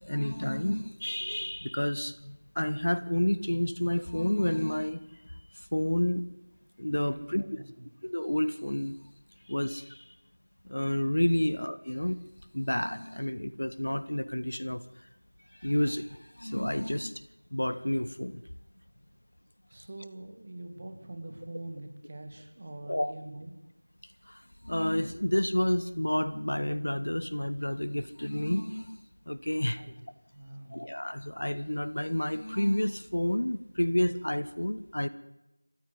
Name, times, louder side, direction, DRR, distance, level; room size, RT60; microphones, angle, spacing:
voice 1, 0.0-6.2 6.8-7.4 8.0-9.0 9.5-10.1 10.6-12.2 12.5-14.8 15.5-17.2 17.5-18.4 22.9-23.1 24.3-29.0 29.3-29.8 30.7-35.1, left 1 dB, 50° left, 14 dB, 1.6 m, -30 dB
voice 2, 7.0-7.9 19.7-23.6 29.8-30.0 30.3-30.8, right 1 dB, 20° right, 6 dB, 2.2 m, -44 dB
29.0 x 15.5 x 9.8 m, 0.93 s
figure-of-eight pair, 175°, 0 cm